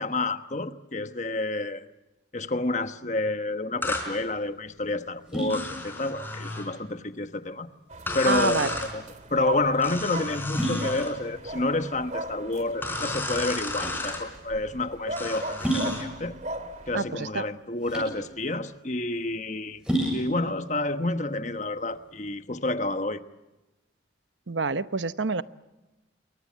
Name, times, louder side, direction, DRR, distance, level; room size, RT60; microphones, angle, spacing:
voice 1, 0.0-1.8 2.3-7.7 8.1-16.4 16.9-19.8 20.1-23.2, left 2 dB, 40° left, 1.2 m, -29 dB
sound 1, 3.7-22.3, right 1 dB, 5° right, 7.9 m, -35 dB
sound 2, 3.8-4.1 5.5-6.7 8.1-8.9 9.8-11.1 12.8-14.2 15.2-16.1, left 2 dB, 10° left, 4.5 m, -33 dB
sound 3, 7.9-17.0, right 2 dB, 40° right, 2.2 m, -38 dB
voice 2, 8.3-8.7 16.9-17.4 24.5-25.4, right 4 dB, 80° right, 0.9 m, -27 dB
27.5 x 23.0 x 7.5 m
head